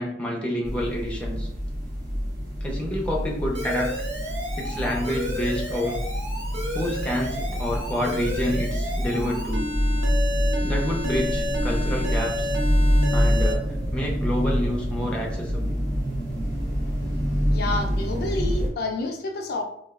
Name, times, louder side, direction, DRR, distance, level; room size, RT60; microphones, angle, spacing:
voice 1, 0.0-1.5 2.6-3.9 4.6-6.0 6.7-9.6 10.6-12.5 13.1-15.8, equal, 5° left, -2 dB, 0.5 m, -28 dB
sound 1, 0.6-18.7, equal, 65° right, 1.0 m, -26 dB
Alarm, 3.5-13.5, left 1 dB, 85° right, 0.7 m, -32 dB
voice 2, 17.5-19.6, left 2 dB, 60° left, 3 dB, 0.4 m, -29 dB
3.0 x 2.3 x 2.3 m, 0.72 s
head